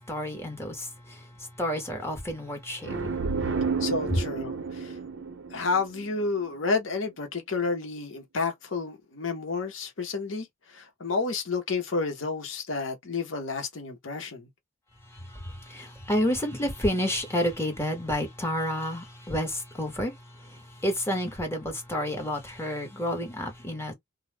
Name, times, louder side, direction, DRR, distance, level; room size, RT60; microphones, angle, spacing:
voice 1, 0.1-1.2 1.6-3.2 15.1-23.9, equal, 15° left, 1.0 m, -30 dB
sound 1, 2.8-6.5, right 5 dB, 65° right, 0.6 m, -31 dB
voice 2, 3.8-4.9 5.5-14.5, left 4 dB, 70° left, 0.8 m, -30 dB
2.3 x 2.0 x 3.2 m
head